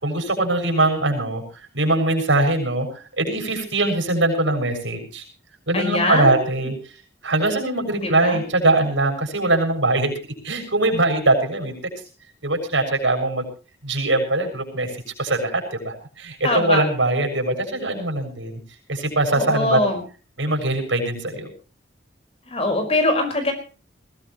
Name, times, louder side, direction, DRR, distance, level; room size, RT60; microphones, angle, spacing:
voice 1, 0.0-1.4 1.7-5.2 5.7-6.7 7.2-10.1 10.4-11.8 12.4-13.4 13.8-18.6 18.9-19.8 20.4-21.5, right 2 dB, 90° right, 5 dB, 6.8 m, -22 dB
voice 2, 5.7-6.4 8.0-8.4 16.4-16.8 19.3-20.0 22.5-23.5, left 2 dB, 30° left, 5 dB, 5.2 m, -22 dB
21.5 x 17.0 x 3.2 m, 0.36 s
head